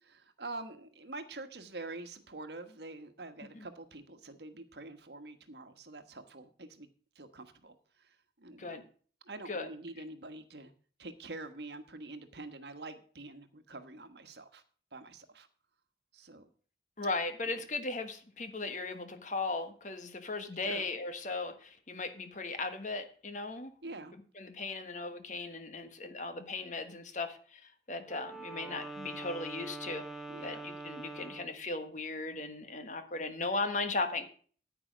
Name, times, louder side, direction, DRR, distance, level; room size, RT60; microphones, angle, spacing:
voice 1, 0.0-6.9 7.1-8.9 9.2-10.7 11.0-14.6 14.9-15.5 16.1-16.5 17.4-17.5 20.6-20.9 23.8-24.1 30.3-30.7, right 2 dB, 65° right, 9 dB, 1.4 m, -46 dB
voice 2, 17.0-23.7 24.4-30.1 30.4-34.3, left 3 dB, 45° left, 8 dB, 1.4 m, -37 dB
Wind instrument woodwind instrument, 28.0-31.6, right 2 dB, ahead, 1.4 m, -44 dB
9.8 x 9.6 x 5.1 m, 0.43 s
head